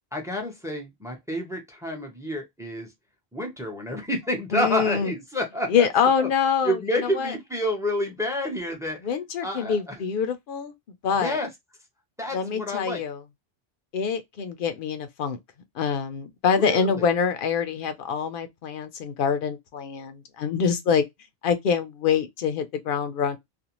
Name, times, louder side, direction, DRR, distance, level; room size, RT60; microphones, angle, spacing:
voice 1, 0.1-2.9 3.3-5.9 6.2-6.3 6.6-9.0 9.4-10.0 11.2-11.5 12.2-13.0 16.6-17.1, left 1 dB, 5° right, 0.6 m, -29 dB
voice 2, 4.5-5.1 5.7-6.8 7.1-7.3 9.0-10.7 11.0-11.4 12.3-13.2 13.9-15.4 15.8-21.0 21.4-23.4, left 6 dB, 60° left, 0.7 m, -25 dB
2.5 x 2.3 x 2.9 m
omnidirectional pair, 1.1 m